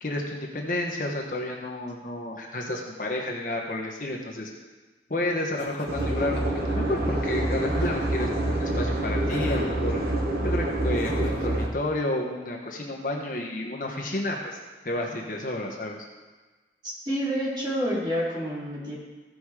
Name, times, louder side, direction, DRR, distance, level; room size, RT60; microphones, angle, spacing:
voice 1, 0.0-4.5 5.1-10.0 10.4-14.6 14.8-16.0, left 1 dB, 50° left, -1 dB, 1.2 m, -31 dB
Laughter, 5.6-6.6 7.7-8.4 9.3-9.8 10.9-11.7, left 1 dB, 75° left, 1.4 m, -38 dB
sound 1, 5.9-11.7, right 1 dB, 60° right, 1.4 m, -26 dB
voice 2, 16.8-19.0, equal, 25° right, -7 dB, 3.3 m, -28 dB
15.5 x 5.2 x 4.9 m, 1.3 s
head